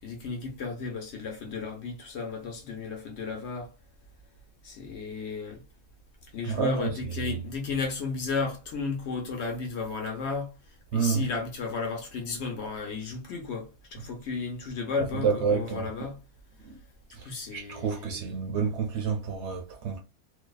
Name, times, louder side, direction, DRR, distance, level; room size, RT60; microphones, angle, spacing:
voice 1, 0.0-3.7 4.6-5.6 6.3-16.2 17.2-18.2, left 4 dB, 60° left, 0.9 m, -34 dB
voice 2, 6.5-7.4 10.9-11.2 15.1-15.9 16.6-16.8 17.1-20.0, right 6 dB, 65° right, 0.8 m, -29 dB
2.6 x 2.2 x 2.2 m
omnidirectional pair, 1.4 m